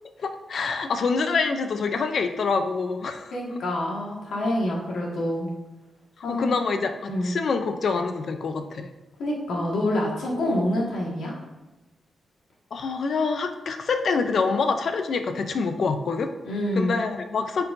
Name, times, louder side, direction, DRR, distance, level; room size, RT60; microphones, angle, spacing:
voice 1, 0.2-3.3 6.3-8.9 12.7-16.3 16.8-17.6, left 4 dB, 60° left, 7 dB, 0.6 m, -26 dB
voice 2, 3.3-5.5 6.2-6.5 7.1-7.3 9.2-11.3 16.5-17.0, left 1 dB, 90° left, -3 dB, 1.9 m, -26 dB
9.5 x 4.5 x 2.7 m, 1.1 s
wide cardioid pair, 120°, 0 cm